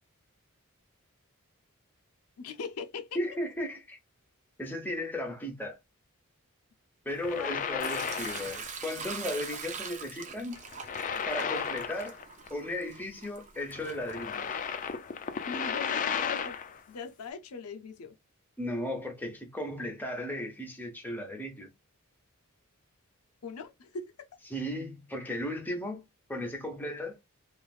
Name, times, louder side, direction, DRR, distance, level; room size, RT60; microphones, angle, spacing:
voice 1, 2.4-3.2 7.3-7.6 15.4-16.6 16.9-18.1 23.4-24.1, left 5 dB, 85° left, 0.5 m, -40 dB
voice 2, 3.1-4.0 4.6-5.8 7.0-10.6 11.3-12.2 12.5-14.6 18.6-21.7 24.5-27.2, left 1 dB, 10° left, 0.8 m, -36 dB
sound 1, 7.1-8.7 9.0-9.2 10.6-12.5 12.7-12.8 13.7-16.8, left 7 dB, 35° left, 0.4 m, -34 dB
Sink (filling or washing) / Liquid, 7.8-14.7, right 5 dB, 35° right, 0.5 m, -43 dB
3.1 x 2.5 x 2.3 m
head